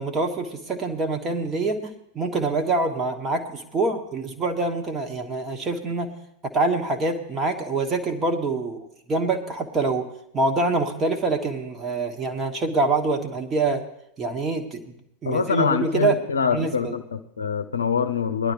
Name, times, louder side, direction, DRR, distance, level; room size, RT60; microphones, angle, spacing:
voice 1, 0.0-6.1 6.5-10.1 10.3-13.8 14.2-14.9 15.2-16.2 16.5-16.9, right 3 dB, 20° right, 4 dB, 1.6 m, -25 dB
voice 2, 15.3-18.5, left 6 dB, 70° left, 9 dB, 0.6 m, -24 dB
19.5 x 11.5 x 3.2 m, 0.76 s
figure-of-eight pair, 90°, 0 cm